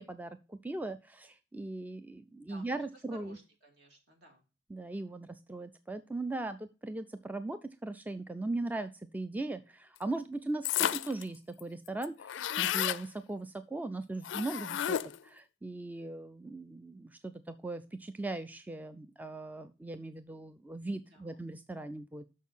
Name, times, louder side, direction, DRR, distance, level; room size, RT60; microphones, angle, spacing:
voice 1, 0.0-3.4 4.7-22.3, right 2 dB, 10° right, 11 dB, 0.3 m, -39 dB
voice 2, 3.2-4.4 21.1-21.4, right 1 dB, 60° right, 2 dB, 2.6 m, -57 dB
sound 1, 10.6-11.2 11.6-11.7 11.9-13.0 14.2-15.3, left 10 dB, 70° left, 0.4 m, -32 dB
6.3 x 6.3 x 5.4 m, 0.33 s
head